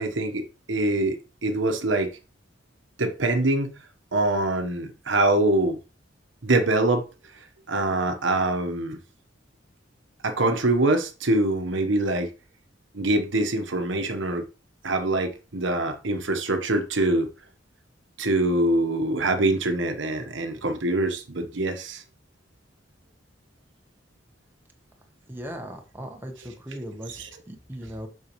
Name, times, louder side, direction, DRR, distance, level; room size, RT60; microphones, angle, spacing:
voice 1, 0.0-2.1 3.0-3.7 4.1-5.8 6.4-7.0 7.7-9.0 10.2-12.3 12.9-14.4 14.8-17.3 18.2-22.0 27.1-27.3, right 2 dB, 70° right, 1.2 m, -24 dB
voice 2, 25.3-27.1 27.5-28.1, equal, 10° right, 1.2 m, -37 dB
7.1 x 6.5 x 3.1 m
head